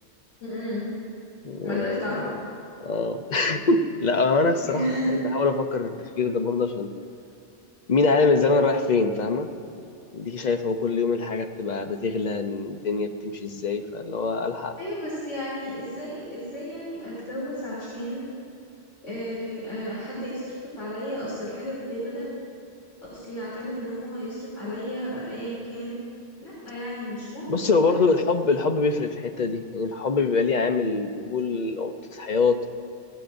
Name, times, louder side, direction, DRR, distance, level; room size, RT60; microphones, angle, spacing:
voice 1, 0.4-0.9 1.6-2.3 4.6-5.1 14.8-18.2 19.0-22.3 23.1-26.0 26.4-27.7, equal, 90° left, -9 dB, 3.5 m, -33 dB
voice 2, 1.4-2.3 2.8-6.9 7.9-9.5 10.1-14.8 27.5-32.7, left 4 dB, 45° left, 6 dB, 0.7 m, -24 dB
20.0 x 15.5 x 2.6 m, 2.7 s
omnidirectional pair, 1.2 m